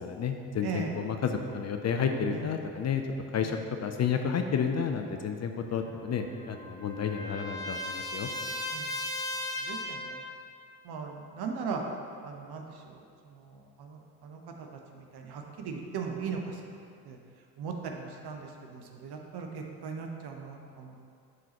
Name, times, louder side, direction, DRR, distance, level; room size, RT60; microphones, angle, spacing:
voice 1, 0.0-3.0 3.3-8.3, left 6 dB, 35° left, 5 dB, 0.5 m, -31 dB
voice 2, 0.6-0.9 2.3-2.4 3.4-3.5 8.7-8.9 9.6-10.2 10.8-11.8 12.2-13.0 13.8-14.4 15.0-16.5 17.1-17.2 17.6-21.0, right 5 dB, 55° right, 2 dB, 1.0 m, -38 dB
Trumpet, 5.8-10.2, left 1 dB, 10° left, 0.9 m, -37 dB
10.5 x 3.9 x 3.0 m, 2.3 s
hypercardioid pair, 45°, 47 cm